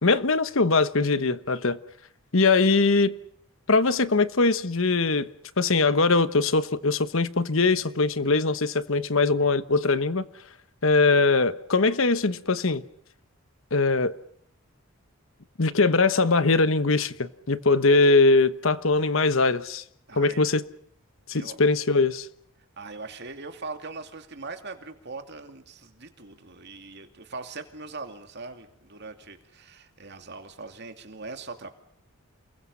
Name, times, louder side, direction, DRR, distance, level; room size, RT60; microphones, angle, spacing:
voice 1, 0.0-1.8 2.3-3.1 3.7-5.3 5.6-10.2 10.8-12.8 13.7-14.2 15.6-19.8 20.2-20.6 21.3-22.3, left 3 dB, 60° left, 1.1 m, -21 dB
voice 2, 20.1-20.5 21.3-21.6 22.8-31.7, right 3 dB, 50° right, 2.5 m, -41 dB
29.5 x 21.5 x 5.6 m
head